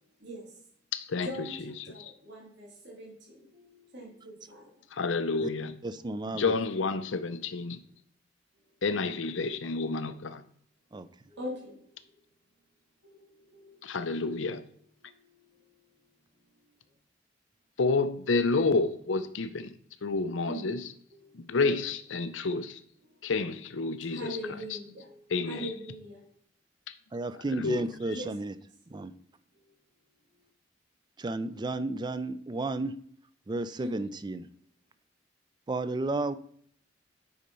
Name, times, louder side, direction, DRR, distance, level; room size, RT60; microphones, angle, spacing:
voice 1, 0.9-2.1 4.9-5.7 6.3-7.8 8.8-10.4 13.8-14.6 17.8-19.7 20.0-20.9 21.3-22.8 23.2-24.4 24.7-24.8 25.3-25.7 26.9-27.0 27.5-27.8, left 3 dB, 85° left, 0.6 m, -30 dB
voice 2, 1.9-3.5 3.9-4.6 7.1-7.2 11.3-11.8 13.0-13.7 20.4-20.6 21.1-21.2 21.6-21.7 24.1-25.1 25.5-26.2 28.1-28.3 33.8-34.1, equal, 65° right, 3.1 m, -41 dB
voice 3, 5.8-6.6 10.9-11.1 27.1-28.5 28.9-29.1 31.2-32.9 33.5-34.5 35.7-36.4, right 2 dB, 25° right, 0.4 m, -32 dB
8.6 x 4.3 x 5.4 m
head